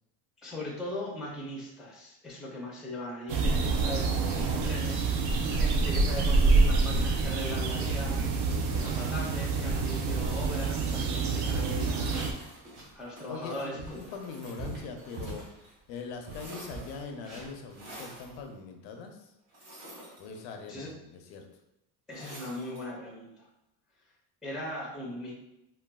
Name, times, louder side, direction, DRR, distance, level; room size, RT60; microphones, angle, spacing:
voice 1, 0.4-8.2 8.8-12.3 12.9-14.1 20.7-20.9 22.1-23.5 24.4-25.4, left 1 dB, ahead, -3 dB, 0.5 m, -39 dB
sound 1, 3.3-12.3, right 4 dB, 65° right, 0.6 m, -27 dB
sound 2, 6.2-6.6 7.0-7.2 7.7-7.8 8.1-8.4 8.7-9.0 9.5-11.2 11.4-13.0 13.4-15.5 15.9-16.0 16.3-18.4, right 2 dB, 35° right, 1.1 m, -41 dB
sound 3, 12.0-15.7 16.0-17.2 17.7-18.4 19.5-20.7 22.1-22.9, right 1 dB, 85° right, 1.3 m, -49 dB
voice 2, 13.3-15.5 15.9-19.3 20.2-21.5, left 4 dB, 90° left, 4 dB, 0.7 m, -42 dB
3.9 x 2.2 x 2.2 m, 0.89 s
cardioid pair, 140°, 43 cm